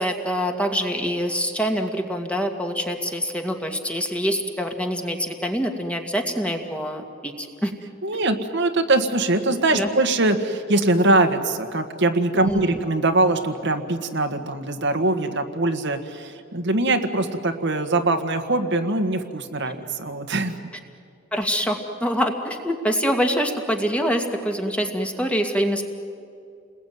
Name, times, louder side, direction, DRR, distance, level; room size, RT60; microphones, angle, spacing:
voice 1, 0.0-7.7 8.1-8.2 9.7-9.9 12.4-12.8 21.3-25.8, equal, 5° left, 4 dB, 2.1 m, -25 dB
voice 2, 8.0-20.6, right 2 dB, 60° right, 7 dB, 1.7 m, -22 dB
30.0 x 21.0 x 9.4 m, 2.3 s
head